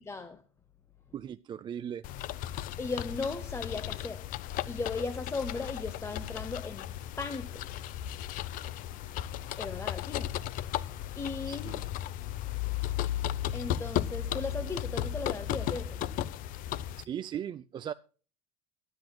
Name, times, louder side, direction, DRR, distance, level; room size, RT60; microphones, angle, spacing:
voice 1, 0.1-0.4 2.8-4.3 4.7-7.7 9.5-10.4 11.2-11.8 13.5-16.1, left 3 dB, 15° left, 0.9 m, -37 dB
voice 2, 1.1-2.0 11.5-11.9 17.0-17.9, right 9 dB, 25° right, 0.4 m, -38 dB
sound 1, 2.0-17.0, left 12 dB, 50° left, 0.7 m, -35 dB
23.0 x 8.1 x 2.3 m
supercardioid pair, 125°, 18 cm